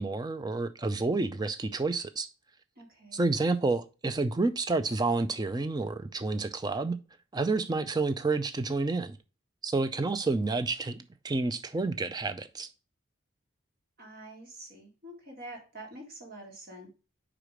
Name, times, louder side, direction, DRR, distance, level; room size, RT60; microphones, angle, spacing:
voice 1, 0.0-2.3 3.1-7.0 7.3-9.2 9.6-11.0 11.2-12.7, right 3 dB, 20° right, 0.4 m, -29 dB
voice 2, 2.8-3.2 14.0-16.9, right 1 dB, 45° right, 2.0 m, -46 dB
5.0 x 4.8 x 4.9 m
head